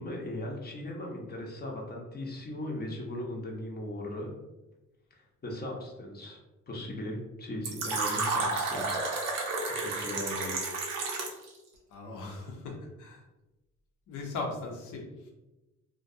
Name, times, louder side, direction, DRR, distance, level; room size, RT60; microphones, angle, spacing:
voice 1, 0.0-4.3 5.1-6.4 6.7-9.1 9.7-10.5, left 1 dB, 30° left, -1 dB, 0.6 m, -38 dB
Fill (with liquid), 7.6-11.5, right 3 dB, 85° right, 0.6 m, -31 dB
voice 2, 11.9-13.2 14.1-15.3, left 3 dB, 85° left, 1 dB, 0.7 m, -39 dB
2.3 x 2.2 x 2.6 m, 1.0 s
cardioid pair, 90°, 30 cm